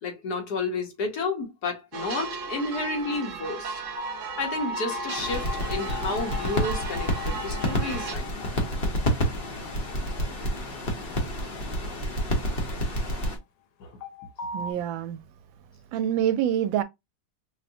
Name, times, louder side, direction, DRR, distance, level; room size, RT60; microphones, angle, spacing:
voice 1, 0.0-3.8 4.4-8.5 13.8-13.9, left 3 dB, 60° left, 1.5 m, -31 dB
sound 1, 1.9-8.1, right 5 dB, 60° right, 0.8 m, -36 dB
sound 2, 4.0-13.0 14.0-14.7, left 4 dB, 85° left, 1.5 m, -39 dB
sound 3, 5.2-13.4, equal, 40° left, 0.9 m, -29 dB
voice 2, 14.5-15.2 15.9-16.8, right 10 dB, 85° right, 1.4 m, -26 dB
5.7 x 2.2 x 2.6 m
omnidirectional pair, 2.1 m